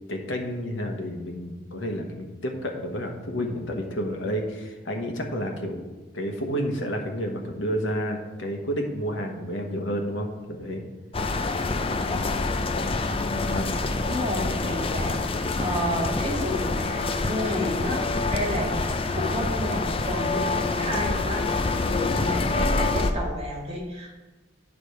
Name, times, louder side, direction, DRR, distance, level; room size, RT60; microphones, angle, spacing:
voice 1, 0.1-10.8 13.3-14.0, equal, 90° left, 2 dB, 1.3 m, -30 dB
sound 1, 11.1-23.1, left 3 dB, 30° left, 0.5 m, -26 dB
voice 2, 13.4-24.1, equal, 35° right, -2 dB, 2.0 m, -32 dB
9.4 x 5.0 x 5.0 m, 1.2 s
head